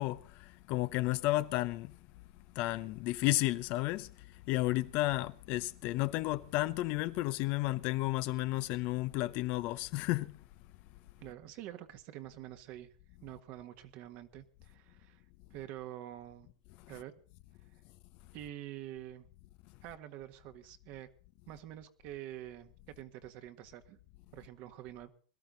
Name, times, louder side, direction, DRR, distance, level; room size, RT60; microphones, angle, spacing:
voice 1, 0.0-1.9 2.5-4.1 4.5-10.4, left 18 dB, 50° left, 0.7 m, -32 dB
voice 2, 11.2-12.9 13.2-15.2 15.5-16.5 16.9-17.1 18.3-19.3 19.8-21.1 21.5-24.0 24.3-25.1, right 13 dB, 50° right, 1.6 m, -47 dB
21.5 x 13.0 x 4.0 m
hypercardioid pair, 100°, 4 cm